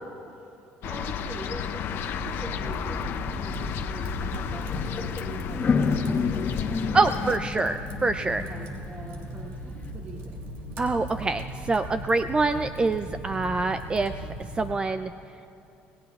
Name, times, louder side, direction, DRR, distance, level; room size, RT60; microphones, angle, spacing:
voice 1, 0.0-0.4 0.8-7.1 8.4-10.4, right 2 dB, 40° right, -2 dB, 2.4 m, -42 dB
sound 1, 0.8-7.4, left 7 dB, 60° left, 0.7 m, -32 dB
Fire, 2.6-14.7, right 1 dB, 75° right, 2.8 m, -38 dB
sound 2, 4.2-4.4 4.6-9.5, left 5 dB, 40° left, 1.2 m, -30 dB
voice 2, 6.9-8.4 10.8-14.1 14.6-15.1, right 3 dB, 20° right, 10 dB, 0.4 m, -25 dB
27.5 x 18.5 x 2.4 m, 2.9 s
supercardioid pair, 90°, 4 cm